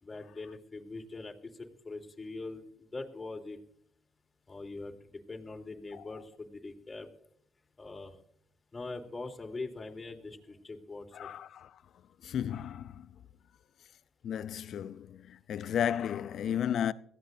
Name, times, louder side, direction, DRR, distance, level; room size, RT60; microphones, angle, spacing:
voice 1, 0.0-3.6 4.5-7.1 7.8-8.1 8.7-11.3, left 3 dB, 30° left, 3.3 m, -42 dB
voice 2, 11.1-11.8 12.2-13.2 14.2-16.9, left 9 dB, 65° left, 0.5 m, -34 dB
21.0 x 16.0 x 2.7 m
hypercardioid pair, 55°, 0 cm